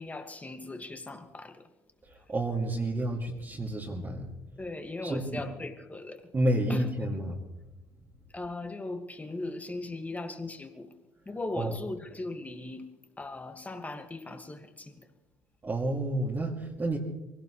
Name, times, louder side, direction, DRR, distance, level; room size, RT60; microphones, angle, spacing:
voice 1, 0.0-1.6 4.6-6.3 6.7-6.9 8.3-11.0 11.3-12.9 13.2-15.1, left 2 dB, 15° left, 2.1 m, -38 dB
voice 2, 2.0-4.3 5.0-5.4 6.3-7.4 11.6-11.7 15.6-17.0, right 1 dB, 25° right, 2.6 m, -30 dB
24.0 x 17.5 x 3.3 m
hypercardioid pair, 60°, 9 cm